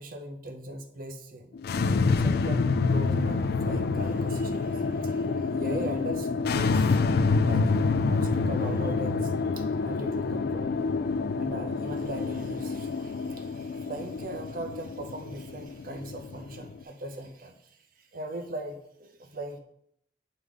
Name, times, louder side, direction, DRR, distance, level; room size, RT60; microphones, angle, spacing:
voice 1, 0.0-1.6 2.2-7.0 7.4-10.8 11.4-19.6, right 1 dB, 50° right, 5 dB, 0.7 m, -39 dB
sound 1, 1.5-16.8, left 4 dB, 60° left, 0.3 m, -27 dB
7.9 x 4.8 x 3.6 m, 0.73 s
head